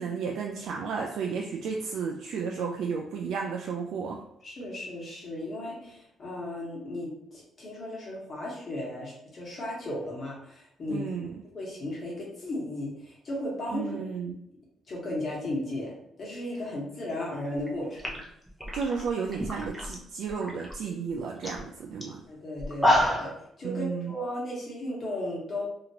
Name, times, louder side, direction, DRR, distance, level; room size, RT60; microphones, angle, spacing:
voice 1, 0.0-4.2 10.9-11.4 13.7-14.4 18.7-22.2 23.6-24.1, right 5 dB, 80° right, 0 dB, 0.3 m, -33 dB
voice 2, 4.4-11.0 11.5-14.0 14.9-18.2 22.3-23.3 23.6-25.6, left 1 dB, 45° left, -4 dB, 1.4 m, -35 dB
sound 1, 17.6-17.7 18.0-20.0 20.3-20.7 21.1-21.2 21.4-21.6 22.0-22.1 22.6-23.4, left 1 dB, 5° left, 0.7 m, -27 dB
2.8 x 2.5 x 2.8 m, 0.77 s
cardioid pair, 90°, 0 cm